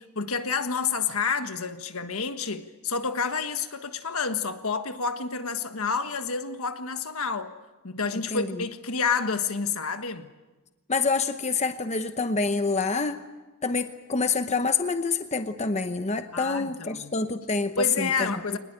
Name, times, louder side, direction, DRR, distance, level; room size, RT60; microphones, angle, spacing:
voice 1, 0.0-7.5 7.8-10.3 16.3-17.1 17.8-18.6, left 5 dB, 75° left, 1.6 m, -29 dB
voice 2, 8.3-8.6 10.9-13.3 13.6-18.4, left 4 dB, 30° left, 0.9 m, -27 dB
24.0 x 20.0 x 8.9 m
head